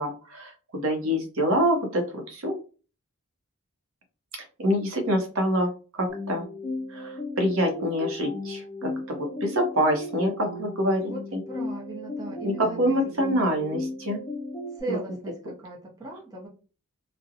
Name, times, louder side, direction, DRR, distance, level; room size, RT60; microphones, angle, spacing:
voice 1, 0.0-2.5 4.6-5.7 6.0-6.4 6.9-11.1 12.4-14.2, equal, 70° right, 3 dB, 0.6 m, -26 dB
sound 1, 6.1-14.8, left 2 dB, 20° left, 0.6 m, -36 dB
voice 2, 11.0-12.9 14.8-16.5, right 2 dB, 15° right, -3 dB, 0.6 m, -37 dB
2.4 x 2.0 x 2.7 m, 0.37 s
head